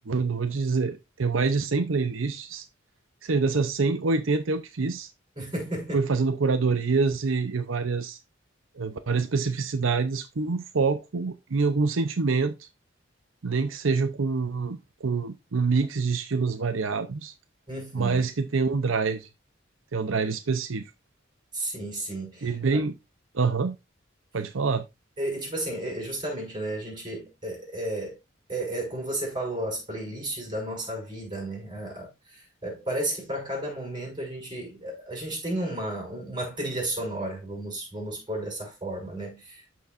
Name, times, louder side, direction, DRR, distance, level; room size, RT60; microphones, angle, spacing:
voice 1, 0.1-2.7 3.2-5.1 5.9-8.2 8.8-12.7 13.4-17.3 17.9-19.3 19.9-20.9 22.4-23.0 23.3-23.8 24.3-24.8, right 4 dB, 90° right, 0.7 m, -26 dB
voice 2, 5.4-6.0 17.7-18.2 21.5-22.8 25.2-28.2 28.5-39.8, right 1 dB, 25° right, 5.3 m, -33 dB
13.5 x 4.6 x 2.5 m
head